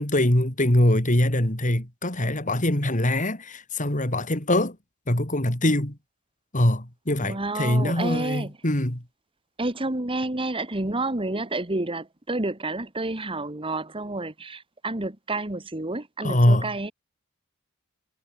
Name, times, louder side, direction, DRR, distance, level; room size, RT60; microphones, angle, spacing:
voice 1, 0.0-4.8 5.1-6.0 6.5-9.0 16.2-16.7, left 1 dB, 40° left, 3.6 m, -23 dB
voice 2, 7.2-8.5 9.6-16.9, right 2 dB, 25° right, 1.8 m, -29 dB
head